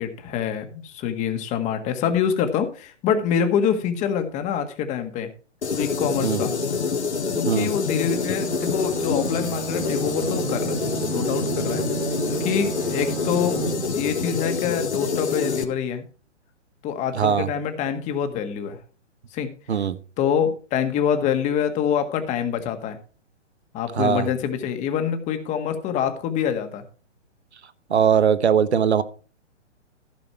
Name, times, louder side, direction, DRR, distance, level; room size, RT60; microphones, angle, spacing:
voice 1, 0.0-5.3 5.7-6.5 7.3-10.8 11.1-11.8 12.3-13.6 13.9-16.0 16.8-18.8 19.3-19.5 20.2-23.0 23.7-26.8, left 8 dB, 20° left, 7 dB, 1.7 m, -25 dB
sound 1, 5.6-15.6, left 5 dB, 65° left, 2.0 m, -27 dB
Bowed string instrument, 8.2-14.2, right 11 dB, 15° right, 0.8 m, -33 dB
voice 2, 17.1-17.5 19.7-20.0 24.0-24.3 27.9-29.0, right 7 dB, 65° right, 15 dB, 1.2 m, -20 dB
15.0 x 6.9 x 4.6 m, 0.38 s
figure-of-eight pair, 125°, 36 cm